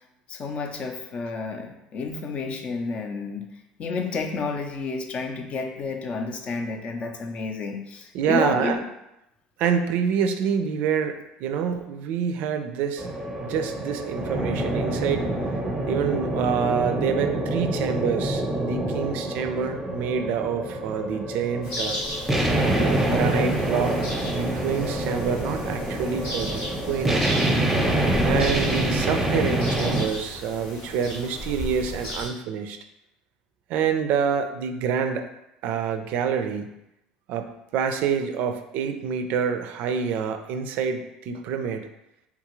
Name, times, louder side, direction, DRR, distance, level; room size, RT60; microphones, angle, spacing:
voice 1, 0.3-3.5 3.8-8.8, left 4 dB, 45° left, 4 dB, 0.5 m, -30 dB
voice 2, 8.1-8.8 9.6-13.1 13.4-15.3 15.9-22.0 22.6-27.6 28.2-32.8 33.7-35.2 35.6-36.7 37.3-41.9, right 7 dB, 65° right, 7 dB, 0.3 m, -27 dB
sound 1, 13.0-30.1, right 1 dB, 5° right, 0.7 m, -26 dB
sound 2, 21.6-32.3, equal, 90° left, 1.2 m, -35 dB
3.5 x 2.4 x 3.0 m, 0.87 s
supercardioid pair, 90°, 3 cm